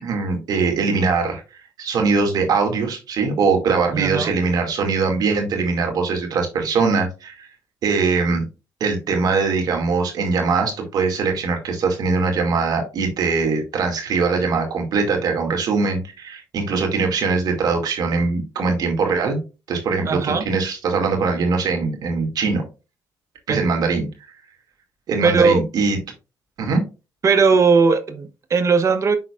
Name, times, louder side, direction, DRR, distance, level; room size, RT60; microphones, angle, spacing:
voice 1, 0.0-1.4 1.8-7.5 7.8-8.5 8.8-19.4 19.7-22.6 23.5-24.1 25.1-26.0 26.6-26.8, right 4 dB, 65° right, 2.3 m, -21 dB
voice 2, 3.9-4.3 20.1-20.4 23.5-23.7 25.2-25.6 27.2-29.2, right 5 dB, 45° right, 1.0 m, -18 dB
11.5 x 3.9 x 2.4 m
cardioid pair, 80°, 7 cm